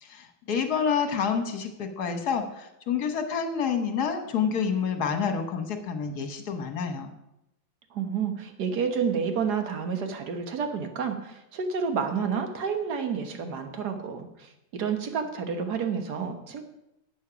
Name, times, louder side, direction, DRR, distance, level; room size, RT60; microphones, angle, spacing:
voice 1, 0.0-7.1, left 6 dB, 55° left, 6 dB, 1.7 m, -28 dB
voice 2, 7.9-16.6, right 6 dB, 60° right, 6 dB, 1.8 m, -30 dB
11.5 x 8.7 x 5.1 m, 0.87 s
omnidirectional pair, 2.1 m